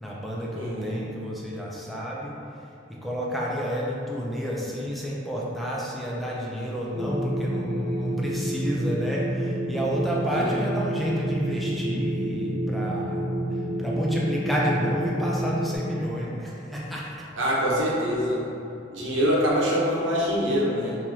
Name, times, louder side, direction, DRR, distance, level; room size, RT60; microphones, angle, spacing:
voice 1, 0.0-13.2 13.5-17.3, equal, ahead, -5 dB, 0.3 m, -30 dB
voice 2, 0.6-0.9 10.3-10.5 17.4-18.5 18.9-21.0, equal, 70° right, -5 dB, 0.8 m, -24 dB
sound 1, 6.9-15.8, right 1 dB, 20° right, 1.2 m, -29 dB
4.5 x 2.7 x 2.7 m, 2.6 s
head